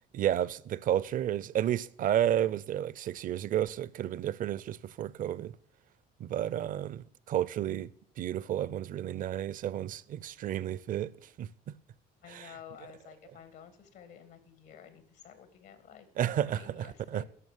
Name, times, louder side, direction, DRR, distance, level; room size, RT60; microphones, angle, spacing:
voice 1, 0.1-5.6 6.2-7.9 8.2-11.5 12.3-12.5 16.2-17.2, right 11 dB, 55° right, 0.5 m, -31 dB
voice 2, 12.2-17.3, left 8 dB, 85° left, 2.1 m, -52 dB
11.0 x 6.6 x 8.9 m
cardioid pair, 110°, 17 cm